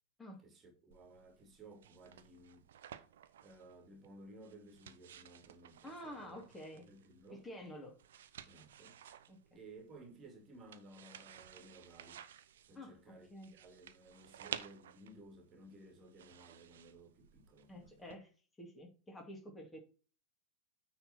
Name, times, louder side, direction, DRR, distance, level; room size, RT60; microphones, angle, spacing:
voice 1, 0.4-2.7 3.4-6.4 6.7-7.4 8.4-9.0 9.5-12.2 12.7-18.0, right 2 dB, 25° right, 2.4 m, -57 dB
sound 1, 0.9-18.1, right 10 dB, 60° right, 0.7 m, -54 dB
voice 2, 5.8-6.9 7.3-8.0 9.3-9.6 12.7-13.6 17.7-18.3 18.6-19.8, equal, 15° left, 2.5 m, -50 dB
9.5 x 4.4 x 4.4 m
figure-of-eight pair, 90°, 0 cm